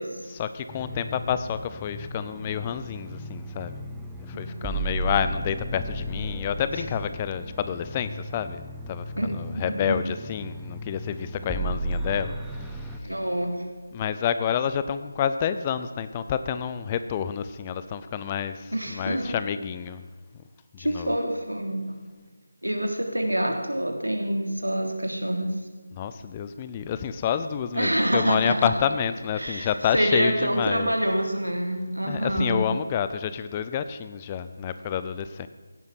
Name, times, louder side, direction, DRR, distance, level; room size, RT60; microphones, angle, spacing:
voice 1, 0.3-3.7 4.3-12.4 13.9-20.0 20.7-21.2 25.9-30.9 32.0-35.5, left 8 dB, 20° left, 12 dB, 0.5 m, -29 dB
sound 1, 0.7-13.0, right 1 dB, 5° right, 0.8 m, -35 dB
voice 2, 4.3-4.9 6.7-6.8 9.2-10.0 13.0-13.6 18.7-19.4 20.8-21.9 22.6-25.5 27.7-28.7 29.4-32.6, right 1 dB, 85° right, 3 dB, 3.3 m, -27 dB
16.5 x 10.5 x 6.0 m, 1.4 s
figure-of-eight pair, 160°, 0 cm